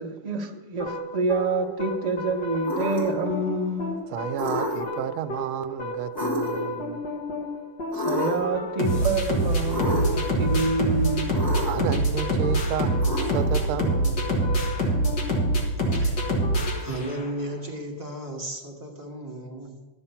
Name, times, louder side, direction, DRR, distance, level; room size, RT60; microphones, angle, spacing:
voice 1, 0.0-4.0 7.9-11.3, right 3 dB, 60° right, 0.4 m, -27 dB
sound 1, 0.8-17.4, right 1 dB, 55° left, 2.2 m, -27 dB
sound 2, 2.6-3.2 4.3-5.0 6.2-6.8 7.9-8.6 9.7-10.3 11.3-11.9 13.0-13.7, left 1 dB, 10° left, 3.2 m, -29 dB
voice 2, 4.1-7.0 11.6-14.8, right 10 dB, 85° right, 1.4 m, -32 dB
voice 3, 15.8-16.2 16.6-19.9, right 1 dB, 10° right, 1.4 m, -35 dB
12.0 x 7.5 x 5.6 m
omnidirectional pair, 2.3 m